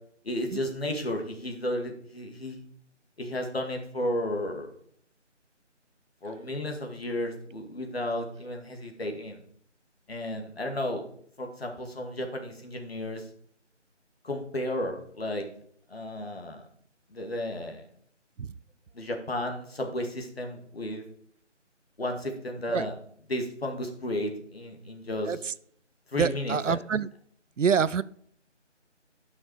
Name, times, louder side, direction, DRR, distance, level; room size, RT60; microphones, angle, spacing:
voice 1, 0.2-2.6 3.2-4.7 6.2-9.4 10.1-11.1 11.4-13.3 14.2-15.4 15.9-16.6 17.1-17.9 18.9-21.0 22.0-23.0 23.3-25.4 26.1-26.8, left 1 dB, 55° left, 3 dB, 2.3 m, -33 dB
voice 2, 26.2-27.1 27.6-28.0, right 6 dB, 85° right, 19 dB, 0.6 m, -26 dB
11.5 x 6.2 x 4.9 m, 0.63 s
figure-of-eight pair, 170°, 36 cm